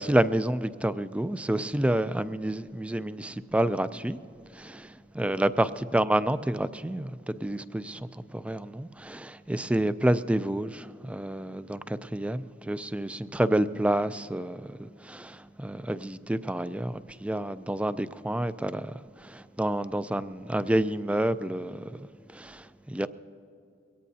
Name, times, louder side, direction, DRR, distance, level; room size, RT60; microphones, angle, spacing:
voice 1, 0.0-4.2 4.6-4.9 5.1-18.9 19.2-21.9 22.3-23.1, right 1 dB, 5° right, 0.3 m, -29 dB
22.5 x 17.5 x 2.8 m
head